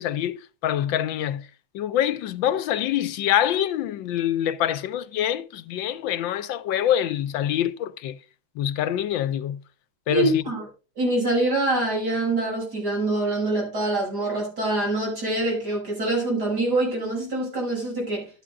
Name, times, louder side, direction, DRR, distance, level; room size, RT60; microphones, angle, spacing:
voice 1, 0.0-1.5 1.7-8.2 8.6-9.6 10.1-10.4, left 11 dB, 80° left, 1.4 m, -25 dB
voice 2, 10.1-10.7 11.0-18.3, right 2 dB, 55° right, 7.3 m, -25 dB
12.5 x 11.0 x 2.4 m
omnidirectional pair, 2.1 m